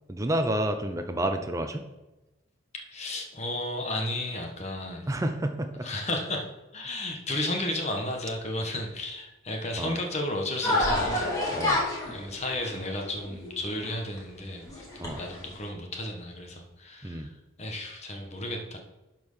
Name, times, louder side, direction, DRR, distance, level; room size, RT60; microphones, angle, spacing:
voice 1, 0.1-1.8 5.1-5.9 9.8-10.0 11.5-11.8 15.0-15.2 17.0-17.3, right 1 dB, 15° right, 6 dB, 0.6 m, -29 dB
voice 2, 2.9-5.1 5.8-11.7 12.1-14.8 15.2-18.8, left 1 dB, 35° left, 2 dB, 1.3 m, -33 dB
sound 1, 10.6-14.2 14.7-15.5, left 1 dB, 15° left, 2.3 m, -29 dB
11.5 x 4.6 x 5.6 m, 1.0 s
head